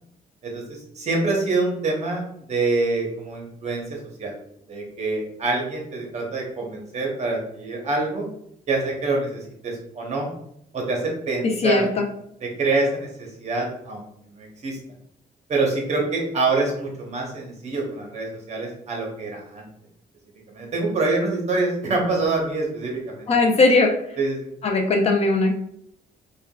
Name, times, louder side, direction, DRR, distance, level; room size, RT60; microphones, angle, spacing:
voice 1, 0.4-2.2 2.5-4.3 4.7-8.3 8.7-10.3 10.7-11.8 12.4-14.8 15.5-19.7 20.5-23.5 24.2-24.5, right 3 dB, 45° right, 0 dB, 0.8 m, -26 dB
voice 2, 11.6-12.1 23.3-23.9 24.6-25.5, left 3 dB, 40° left, 3 dB, 0.4 m, -18 dB
3.4 x 2.2 x 2.3 m, 0.72 s
cardioid pair, 125°, 16 cm